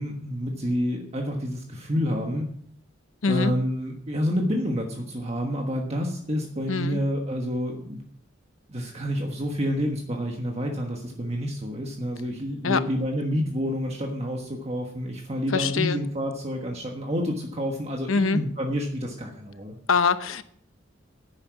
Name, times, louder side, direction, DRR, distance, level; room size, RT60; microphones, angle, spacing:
voice 1, 0.0-2.5 3.3-8.0 8.7-19.8, equal, 35° right, 1 dB, 1.4 m, -28 dB
voice 2, 3.2-3.5 6.7-7.0 12.6-12.8 15.5-16.0 18.1-18.4 19.9-20.4, left 4 dB, 90° left, 12 dB, 0.9 m, -23 dB
11.0 x 9.1 x 6.0 m, 0.65 s
head